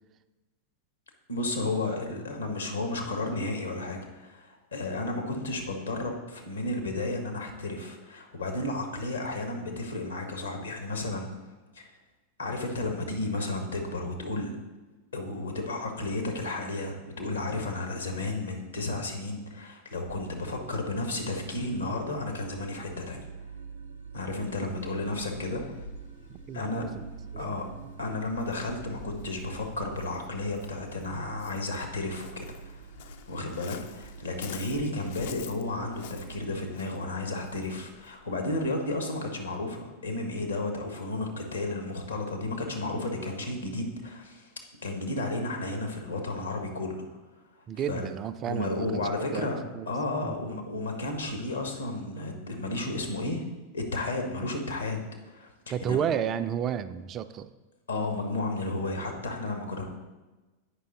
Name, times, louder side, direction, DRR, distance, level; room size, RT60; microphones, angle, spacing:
voice 1, 1.3-11.3 11.7-12.0 12.4-14.5 15.1-23.3 24.1-25.8 26.5-26.8 27.4-27.6 28.0-32.8 33.3-47.1 47.9-48.1 48.5-49.6 49.9-53.4 53.7-55.5 55.9-56.0 57.9-59.9, left 2 dB, 75° left, 2 dB, 1.2 m, -33 dB
sound 1, 20.1-36.7, right 5 dB, 75° right, 0.6 m, -47 dB
Waves surf, 24.4-38.3, left 7 dB, 55° left, 0.4 m, -49 dB
voice 2, 26.3-26.9 27.5-27.6 47.7-49.9 50.2-50.4 55.7-57.5, right 9 dB, 30° right, 11 dB, 0.3 m, -32 dB
8.3 x 5.4 x 3.9 m, 1.2 s
figure-of-eight pair, 90°, 0 cm